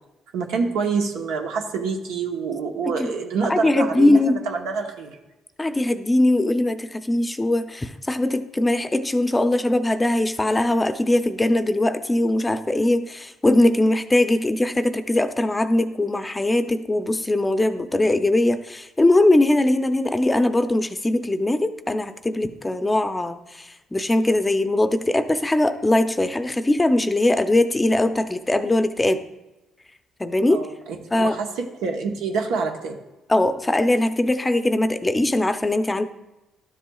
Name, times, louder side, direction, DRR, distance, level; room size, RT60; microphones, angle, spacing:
voice 1, 0.3-5.2 30.5-30.7 31.1-33.0, right 5 dB, 90° right, 3 dB, 0.9 m, -26 dB
voice 2, 3.5-4.4 5.6-29.2 30.2-30.6 31.1-31.4 33.3-36.1, left 1 dB, 15° left, 10 dB, 0.5 m, -21 dB
12.0 x 7.4 x 2.3 m, 1.0 s
cardioid pair, 80°, 0 cm